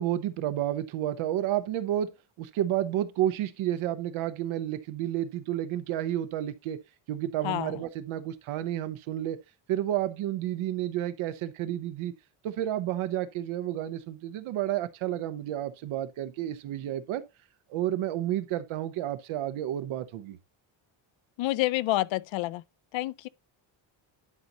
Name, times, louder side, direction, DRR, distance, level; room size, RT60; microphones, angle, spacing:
voice 1, 0.0-2.1 2.4-6.8 7.1-9.4 9.7-12.1 12.4-17.2 17.7-20.4, right 12 dB, 85° right, 0.9 m, -31 dB
voice 2, 21.4-22.6 22.9-23.3, left 17 dB, 70° left, 0.5 m, -28 dB
11.0 x 5.4 x 2.9 m
cardioid pair, 170°, 47 cm